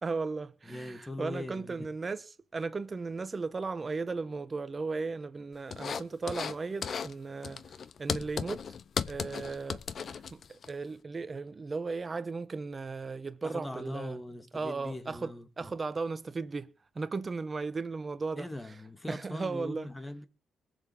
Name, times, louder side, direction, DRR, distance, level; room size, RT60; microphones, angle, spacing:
voice 1, 0.0-2.2 2.5-7.6 8.0-8.6 9.1-14.2 14.5-15.3 15.6-18.5 19.1-19.9, right 4 dB, 30° right, 1.3 m, -36 dB
voice 2, 0.6-1.9 13.4-15.7 18.4-20.3, left 1 dB, 15° left, 2.3 m, -41 dB
sound 1, 5.7-6.6 6.8-7.1 7.4-10.7, left 6 dB, 50° left, 1.0 m, -36 dB
21.0 x 7.3 x 7.3 m
cardioid pair, 90°, 0 cm